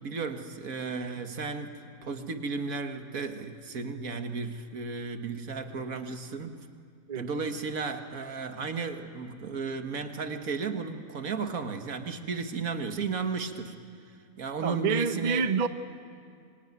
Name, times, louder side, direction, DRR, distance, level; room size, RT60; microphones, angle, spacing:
voice 1, 0.0-1.7 2.0-6.6 7.2-13.7 14.4-15.4, right 4 dB, 75° right, 6 dB, 2.0 m, -34 dB
voice 2, 14.6-15.7, right 5 dB, 35° right, 10 dB, 0.8 m, -27 dB
25.0 x 24.5 x 9.5 m, 2.3 s
omnidirectional pair, 1.5 m